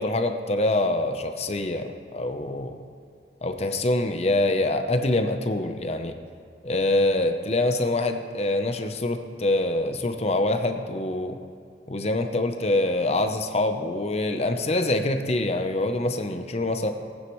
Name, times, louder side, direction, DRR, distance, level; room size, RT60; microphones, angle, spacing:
voice 1, 0.0-2.8 3.4-6.1 6.6-11.4 11.9-16.9, left 2 dB, 35° left, 7 dB, 0.8 m, -25 dB
19.5 x 9.3 x 3.2 m, 2.3 s
head